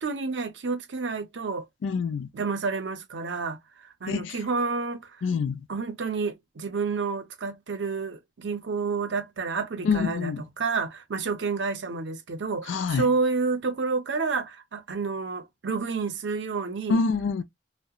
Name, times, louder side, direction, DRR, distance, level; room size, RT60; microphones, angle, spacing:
voice 1, 0.0-1.6 2.3-3.6 4.0-5.1 5.7-17.0, right 4 dB, 70° right, 0.6 m, -29 dB
voice 2, 1.8-2.3 4.1-4.4 5.2-5.6 9.8-10.4 12.7-13.1 16.9-17.4, left 5 dB, 75° left, 0.4 m, -26 dB
2.7 x 2.1 x 2.2 m
head